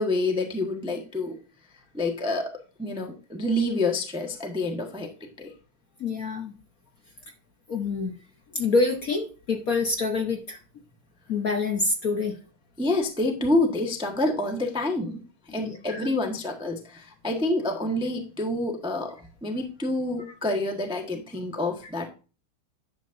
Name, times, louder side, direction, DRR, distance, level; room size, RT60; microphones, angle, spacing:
voice 1, 0.0-1.4 1.9-2.5 2.8-5.1 5.4-5.5 12.8-15.2 15.5-22.1, left 2 dB, 5° right, 2 dB, 0.8 m, -27 dB
voice 2, 6.0-6.5 7.7-8.1 8.5-10.6 11.3-12.3 15.6-16.1, left 3 dB, 55° left, 3 dB, 1.1 m, -26 dB
10.5 x 7.2 x 2.6 m, 0.35 s
omnidirectional pair, 2.3 m